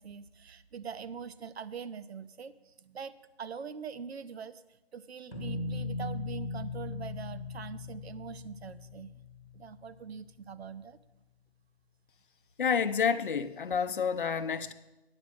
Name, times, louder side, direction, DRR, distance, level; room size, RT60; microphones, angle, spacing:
voice 1, 0.0-9.1 9.5-11.0, right 6 dB, 75° right, 0.7 m, -43 dB
sound 1, 5.3-10.2, left 3 dB, ahead, 0.6 m, -39 dB
voice 2, 12.6-14.7, left 6 dB, 55° left, 0.6 m, -29 dB
9.6 x 7.1 x 6.3 m
hypercardioid pair, 170°, 32 cm